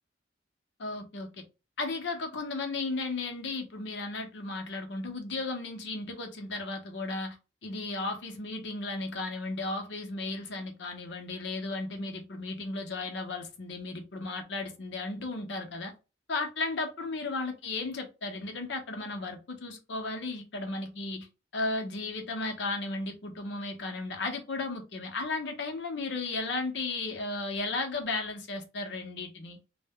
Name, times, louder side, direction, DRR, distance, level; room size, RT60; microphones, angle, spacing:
voice 1, 0.8-1.4 1.8-7.4 7.6-15.9 16.3-21.3 21.5-29.6, left 3 dB, 70° left, 0.6 m, -35 dB
2.1 x 2.0 x 3.4 m
head